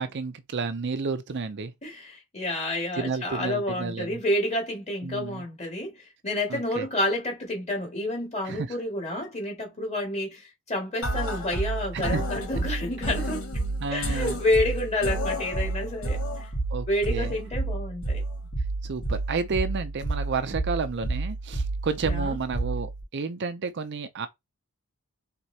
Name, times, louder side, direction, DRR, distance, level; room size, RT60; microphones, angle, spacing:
voice 1, 0.0-1.7 3.0-4.2 5.0-5.4 6.5-6.9 8.5-8.8 11.9-12.2 13.8-14.4 16.7-17.3 18.8-24.3, right 4 dB, 50° right, 0.5 m, -31 dB
voice 2, 1.8-13.4 13.9-16.5 16.9-18.2 22.0-22.4, left 1 dB, 30° left, 2.1 m, -29 dB
sound 1, 11.0-23.0, right 2 dB, 75° left, 2.7 m, -30 dB
4.6 x 3.7 x 2.8 m
head